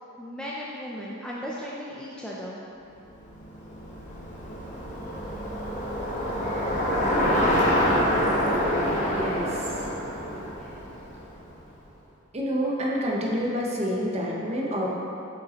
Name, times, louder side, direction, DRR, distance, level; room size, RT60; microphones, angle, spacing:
voice 1, 0.2-2.6 10.6-10.8, equal, 5° left, -6 dB, 0.4 m, -36 dB
Bicycle, 3.2-11.6, equal, 35° left, 1.1 m, -26 dB
voice 2, 9.1-9.9 12.3-14.9, equal, 30° right, -3 dB, 0.9 m, -28 dB
8.3 x 5.3 x 2.9 m, 2.8 s
head